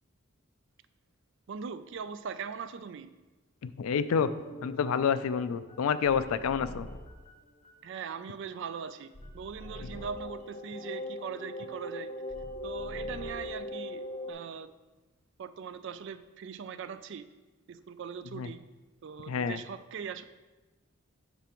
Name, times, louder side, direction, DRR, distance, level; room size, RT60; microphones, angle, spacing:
voice 1, 1.5-3.1 7.8-12.1 12.6-14.7 15.4-17.2 17.7-18.6 19.0-20.2, right 6 dB, 60° right, 12 dB, 0.3 m, -40 dB
voice 2, 3.6-4.3 4.6-6.9 18.3-18.5 19.3-19.6, left 6 dB, 90° left, 13 dB, 0.4 m, -28 dB
sound 1, 4.2-7.3 7.6-8.1 8.4-14.3, left 1 dB, 35° left, 0.7 m, -41 dB
8.1 x 6.0 x 3.0 m, 1.2 s
head